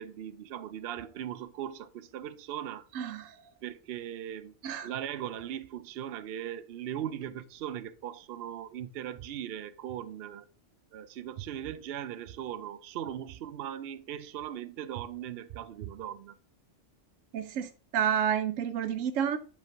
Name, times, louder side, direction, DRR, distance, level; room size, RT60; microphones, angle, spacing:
voice 1, 0.0-2.9 3.6-4.5 4.8-10.4 10.9-16.4, right 10 dB, 60° right, 0.7 m, -39 dB
voice 2, 2.9-3.3 4.6-4.9 17.3-19.4, right 8 dB, 90° right, 1.0 m, -30 dB
8.3 x 3.3 x 4.5 m
omnidirectional pair, 1.3 m